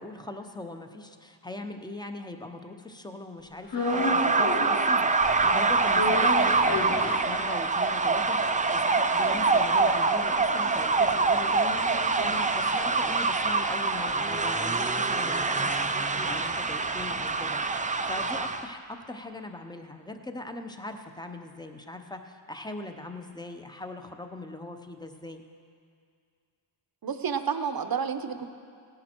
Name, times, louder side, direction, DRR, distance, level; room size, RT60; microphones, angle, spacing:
voice 1, 0.0-25.4, left 2 dB, 10° left, 6 dB, 0.7 m, -40 dB
sound 1, 3.7-4.9 5.2-7.8 8.2-8.3 8.5-13.0 13.3-17.3, left 2 dB, 60° left, 2.7 m, -34 dB
sound 2, 3.8-18.6, right 3 dB, 20° right, 0.4 m, -25 dB
voice 2, 11.9-12.4 27.0-28.4, right 7 dB, 50° right, 9 dB, 0.8 m, -31 dB
17.0 x 10.5 x 4.5 m, 2.3 s
wide cardioid pair, 120°, 48 cm